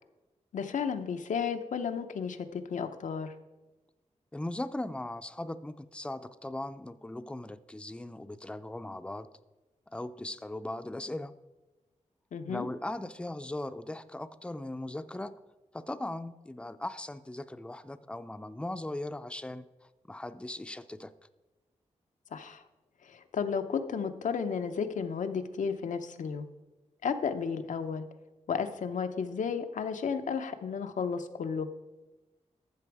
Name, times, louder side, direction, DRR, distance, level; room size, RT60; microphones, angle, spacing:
voice 1, 0.5-3.3 12.3-12.7 22.3-22.6 23.0-26.5 27.0-28.1 28.5-31.7, left 6 dB, 90° left, 8 dB, 0.7 m, -33 dB
voice 2, 4.3-9.3 9.9-11.3 12.5-15.4 15.7-19.7 20.1-21.1, left 1 dB, 10° left, 12 dB, 0.4 m, -38 dB
13.5 x 6.9 x 4.8 m, 1.1 s
wide cardioid pair, 110°, 13 cm